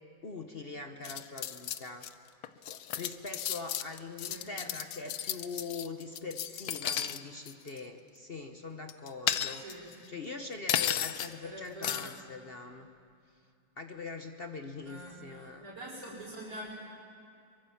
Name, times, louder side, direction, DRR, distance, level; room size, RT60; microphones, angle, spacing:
voice 1, 0.2-2.1 2.9-9.6 10.1-12.9 13.8-15.7, left 3 dB, 40° left, 6 dB, 0.9 m, -42 dB
sound 1, 1.0-2.1 2.4-7.2 7.5-7.8 8.9-9.9 10.7-11.3 11.8-12.2, left 10 dB, 65° left, 1.1 m, -34 dB
voice 2, 11.4-12.0 14.8-16.7, right 1 dB, 50° right, -10 dB, 5.2 m, -45 dB
23.5 x 22.5 x 7.1 m, 2.5 s
omnidirectional pair, 2.0 m